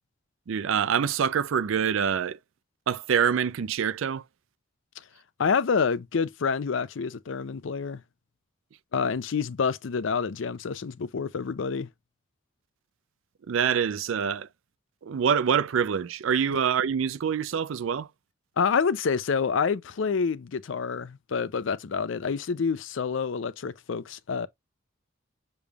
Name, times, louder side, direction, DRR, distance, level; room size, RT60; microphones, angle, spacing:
voice 1, 0.5-2.4 2.9-4.2 13.5-14.5 15.0-18.1, right 7 dB, 70° right, 0.4 m, -25 dB
voice 2, 5.4-8.0 8.9-11.9 18.6-24.5, left 5 dB, 65° left, 0.5 m, -27 dB
6.9 x 3.2 x 2.3 m
head